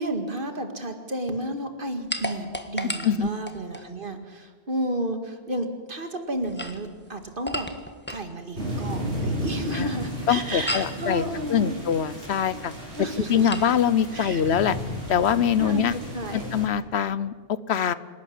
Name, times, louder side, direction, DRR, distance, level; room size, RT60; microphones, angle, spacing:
voice 1, 0.0-7.7 8.1-11.8 12.5-12.6 12.9-13.7 14.1-14.4 15.6-16.5, right 1 dB, 55° right, 6 dB, 2.2 m, -32 dB
sound 1, 2.1-3.9 6.4-8.3 10.7-11.0 13.5-13.7, equal, 10° left, 1.4 m, -33 dB
Tropical Storm Heavy Rain Thunderstorm, 8.6-16.7, equal, 90° right, 5.2 m, -34 dB
voice 2, 10.3-11.2 11.5-12.7 13.2-14.8 15.1-15.9 16.3-17.9, left 8 dB, 75° left, 16 dB, 1.0 m, -23 dB
26.5 x 12.0 x 10.0 m, 1.5 s
omnidirectional pair, 1.1 m